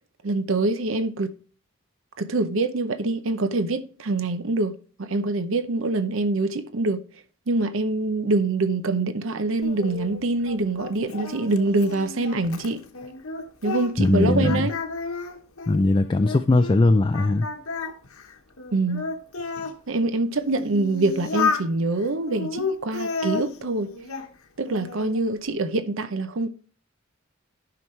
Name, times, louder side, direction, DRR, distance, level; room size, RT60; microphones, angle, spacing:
voice 1, 0.2-1.3 2.2-7.0 7.5-12.8 13.6-14.7 18.7-19.1 19.9-23.9 24.6-26.5, right 2 dB, 65° right, 0.7 m, -25 dB
Singing, 9.6-14.1 14.4-16.8 17.1-19.8 20.4-21.7 22.3-24.3 24.7-25.2, left 4 dB, 85° left, 1.0 m, -32 dB
voice 2, 14.0-14.7 15.7-17.5, left 2 dB, 20° left, 0.3 m, -20 dB
11.0 x 5.9 x 3.2 m
head